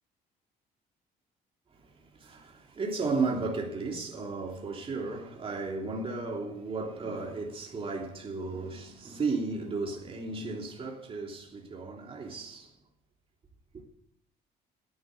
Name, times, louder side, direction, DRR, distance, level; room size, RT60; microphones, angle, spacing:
voice 1, 2.2-12.7, right 3 dB, 35° right, 3.1 m, -34 dB
11.5 x 9.9 x 9.4 m
cardioid pair, 110°, 17 cm